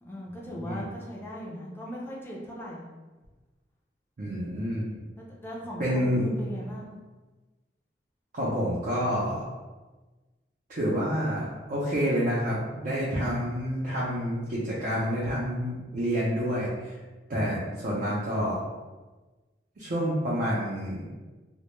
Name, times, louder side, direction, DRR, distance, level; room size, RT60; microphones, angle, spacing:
voice 1, 0.0-2.9 5.2-7.0 17.6-18.0, equal, 15° left, -4 dB, 0.4 m, -39 dB
voice 2, 4.2-4.9 5.8-6.3 8.3-9.4 10.7-17.0 17.3-18.6 19.8-21.1, equal, 50° right, -7 dB, 0.5 m, -28 dB
2.1 x 2.1 x 3.0 m, 1.2 s
head